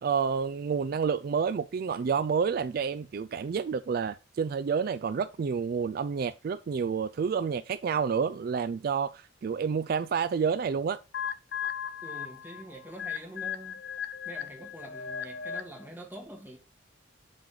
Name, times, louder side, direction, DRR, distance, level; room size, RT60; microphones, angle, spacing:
voice 1, 0.0-11.0, right 6 dB, 50° right, 0.3 m, -29 dB
sound 1, 11.1-15.9, left 8 dB, 60° left, 0.6 m, -37 dB
voice 2, 12.0-13.8 14.2-16.6, right 1 dB, 10° right, 1.6 m, -45 dB
7.6 x 3.9 x 4.8 m
head